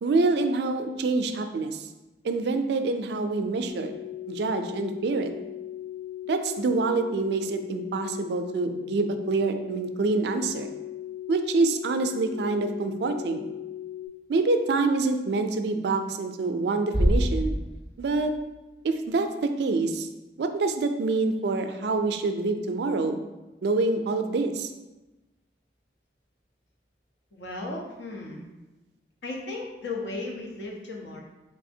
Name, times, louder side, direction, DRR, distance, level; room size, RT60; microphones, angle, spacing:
voice 1, 0.0-1.9 2.2-4.0 4.3-5.3 6.3-10.7 11.3-13.4 14.3-17.5 18.0-18.3 18.8-20.1 20.4-23.2 23.6-24.7, right 3 dB, 70° right, 7 dB, 0.3 m, -26 dB
sound 1, 3.7-14.1, left 12 dB, 30° left, 0.5 m, -38 dB
sound 2, 16.9-18.9, equal, 15° left, 1.1 m, -26 dB
voice 2, 27.3-28.4 29.2-31.2, left 2 dB, 85° left, 0 dB, 0.7 m, -35 dB
4.1 x 3.3 x 2.6 m, 1.1 s
head